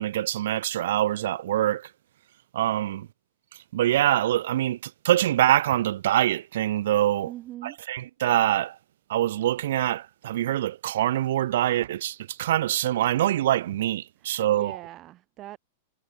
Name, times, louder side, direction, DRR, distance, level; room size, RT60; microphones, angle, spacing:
voice 1, 0.0-1.9 2.5-3.1 3.7-7.3 7.6-8.8 9.1-14.8, right 13 dB, 55° right, 5.5 m, -24 dB
voice 2, 7.3-7.8 14.2-15.6, right 15 dB, 20° right, 6.5 m, -41 dB
supercardioid pair, 180°, 0 cm